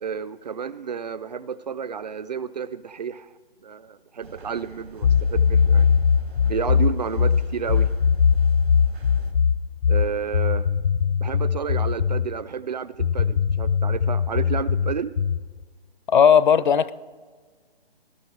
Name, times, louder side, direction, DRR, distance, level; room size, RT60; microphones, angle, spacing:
voice 1, 0.0-3.3 3.6-6.0 6.4-7.9 9.9-10.7 11.2-15.1, right 7 dB, 45° right, 0.5 m, -31 dB
sound 1, 4.2-9.3, right 4 dB, 85° right, 3.6 m, -46 dB
sound 2, 5.0-12.3 13.0-15.5, left 6 dB, 90° left, 0.7 m, -20 dB
voice 2, 16.1-16.9, left 7 dB, 50° left, 0.6 m, -16 dB
19.5 x 11.0 x 4.6 m
hypercardioid pair, 160°, 31 cm